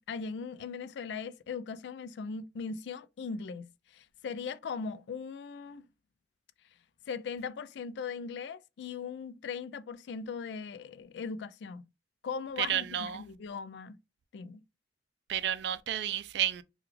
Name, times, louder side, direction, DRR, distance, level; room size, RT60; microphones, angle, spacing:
voice 1, 0.1-5.8 7.1-11.9 12.2-14.0 14.3-14.6, left 5 dB, 75° left, 0.3 m, -39 dB
voice 2, 12.6-13.2 15.3-16.6, right 10 dB, 75° right, 0.3 m, -31 dB
3.3 x 2.3 x 3.3 m
head